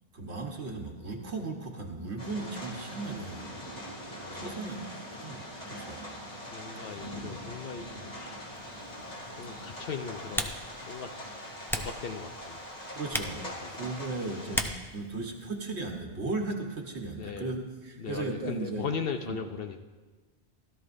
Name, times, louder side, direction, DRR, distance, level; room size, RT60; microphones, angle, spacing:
voice 1, 0.1-3.4 4.3-6.1 7.0-7.1 12.9-13.4 13.7-18.9 19.3-19.4, right 3 dB, 80° right, 1 dB, 1.5 m, -36 dB
sound 1, 2.2-14.6, equal, 40° left, 2.6 m, -42 dB
voice 2, 4.2-4.8 6.5-8.5 9.4-10.5 10.8-11.1 11.8-12.6 13.4-13.7 14.3-14.5 17.2-17.6 18.0-19.8, left 6 dB, 65° left, 6 dB, 0.8 m, -38 dB
Typing, 8.5-16.0, equal, 5° left, 0.4 m, -39 dB
16.5 x 12.5 x 2.6 m, 1.3 s
omnidirectional pair, 1.1 m